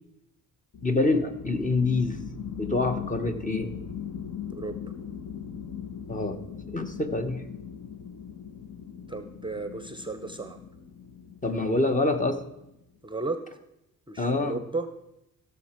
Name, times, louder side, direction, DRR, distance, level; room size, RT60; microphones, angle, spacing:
sound 1, 0.7-12.8, left 8 dB, 55° left, 1.1 m, -40 dB
voice 1, 0.8-2.2 2.6-3.7 6.1-7.4 11.4-12.5 14.2-14.6, left 2 dB, 25° left, 7 dB, 1.0 m, -26 dB
voice 2, 9.1-10.6 13.0-13.4 14.1-14.9, right 3 dB, 15° right, 9 dB, 0.7 m, -34 dB
14.5 x 6.8 x 4.4 m, 0.84 s
cardioid pair, 85°, 34 cm